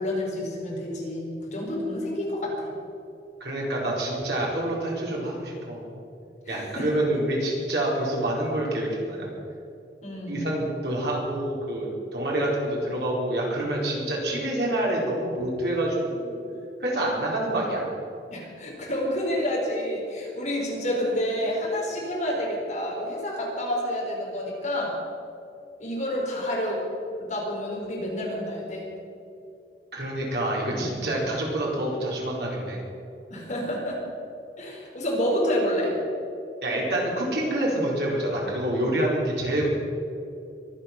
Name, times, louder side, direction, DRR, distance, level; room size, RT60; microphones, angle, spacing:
voice 1, 0.0-2.7 6.4-6.9 10.0-10.5 18.3-24.9 25.8-26.8 27.2-28.8 33.3-34.0 34.6-35.9, equal, 40° left, -3 dB, 4.6 m, -29 dB
voice 2, 3.4-5.9 6.5-9.3 10.3-16.4 16.8-17.8 29.9-32.8 36.6-39.7, right 1 dB, 70° right, -3 dB, 4.4 m, -27 dB
23.5 x 8.8 x 6.1 m, 2.6 s
head